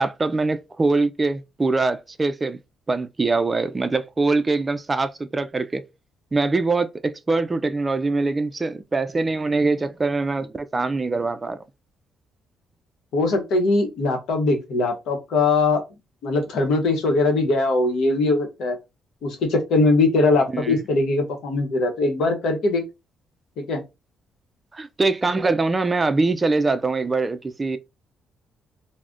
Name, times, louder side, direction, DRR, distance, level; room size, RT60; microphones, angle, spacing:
voice 1, 0.0-2.6 2.9-5.8 6.3-11.6 20.5-20.8 24.7-27.8, right 3 dB, 25° right, 0.3 m, -23 dB
voice 2, 13.1-15.8 16.2-18.8 19.2-22.8 23.6-23.8, left 3 dB, 80° left, 0.8 m, -21 dB
2.4 x 2.1 x 3.4 m
cardioid pair, 90°, 0 cm